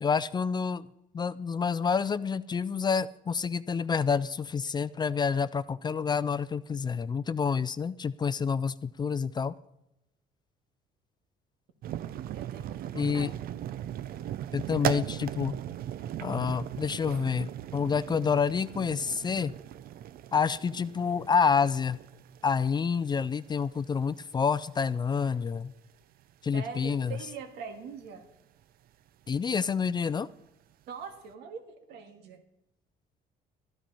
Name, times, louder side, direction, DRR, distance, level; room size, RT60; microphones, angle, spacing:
voice 1, 0.0-0.8 1.1-9.6 12.9-13.3 14.5-15.6 16.2-19.5 20.3-22.0 22.4-25.7 26.4-27.2 29.3-30.3, left 6 dB, 25° left, 17 dB, 0.4 m, -28 dB
sound 1, 11.8-24.3 24.6-24.8 25.3-25.4 25.7-25.9 26.8-26.9, right 11 dB, 60° right, 0.5 m, -38 dB
voice 2, 12.3-13.3 26.5-28.2 30.9-31.6 31.9-32.4, right 6 dB, 85° right, 6 dB, 1.9 m, -43 dB
13.0 x 10.5 x 5.5 m, 0.86 s
cardioid pair, 110°, 17 cm